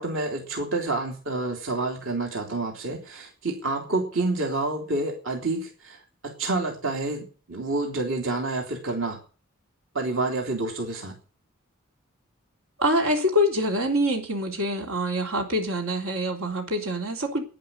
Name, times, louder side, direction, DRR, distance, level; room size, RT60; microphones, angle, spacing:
voice 1, 0.0-9.2 9.9-11.2, right 2 dB, 70° right, 3.0 m, -28 dB
voice 2, 12.8-17.4, equal, 85° right, 3.5 m, -25 dB
11.0 x 10.0 x 9.9 m
head